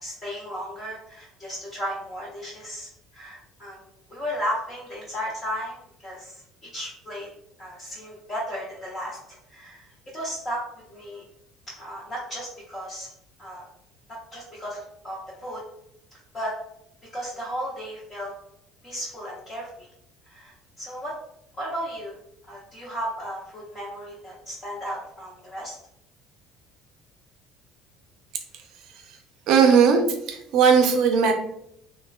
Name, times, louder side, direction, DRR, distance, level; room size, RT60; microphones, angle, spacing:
voice 1, 0.0-5.8 6.0-7.3 7.6-9.2 9.5-9.9 10.1-11.2 11.8-13.1 13.4-13.7 14.3-15.6 16.3-16.6 17.1-18.3 18.8-19.9 20.3-21.2 21.6-22.2 22.5-25.8, equal, 20° left, -6 dB, 0.5 m, -34 dB
voice 2, 29.5-30.0 30.3-31.3, right 6 dB, 55° right, 5 dB, 0.4 m, -17 dB
3.1 x 2.1 x 2.2 m, 0.76 s
cardioid pair, 160°, 0 cm